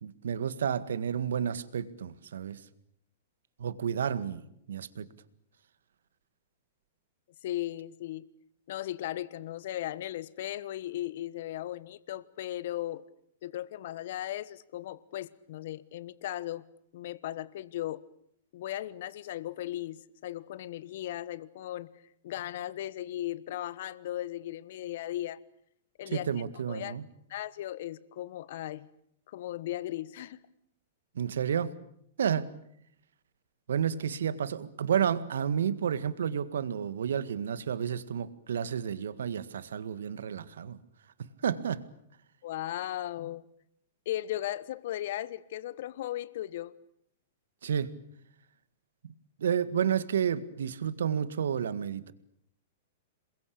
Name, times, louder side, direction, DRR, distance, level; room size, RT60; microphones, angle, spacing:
voice 1, 0.0-2.6 3.6-4.4 4.7-5.1 26.1-27.0 31.2-31.7 32.2-32.5 33.7-40.8 41.4-41.8 47.6-47.9 49.0-49.1 49.4-52.1, right 8 dB, 75° right, 14 dB, 1.8 m, -31 dB
voice 2, 7.4-8.3 8.7-13.0 13.4-16.6 16.9-18.0 18.5-21.9 22.2-25.4 26.0-26.3 26.7-26.9 27.3-28.9 29.3-30.4 42.4-43.4 44.0-46.7, left 13 dB, 60° left, 18 dB, 1.3 m, -37 dB
28.0 x 22.0 x 8.6 m, 0.73 s
hypercardioid pair, 110°, 0 cm